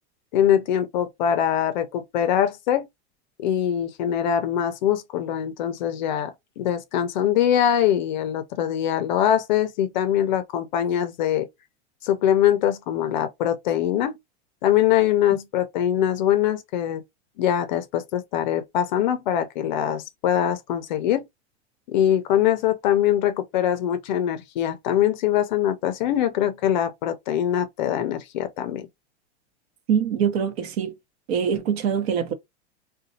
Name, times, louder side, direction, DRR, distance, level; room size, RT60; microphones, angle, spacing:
voice 1, 0.3-2.9 3.4-6.3 6.6-11.5 12.0-14.2 14.6-17.0 17.4-21.2 21.9-28.9, left 10 dB, 45° left, 0.5 m, -23 dB
voice 2, 29.9-30.9 31.3-32.3, right 7 dB, 65° right, 0.8 m, -23 dB
3.9 x 2.2 x 2.6 m
supercardioid pair, 175°, 34 cm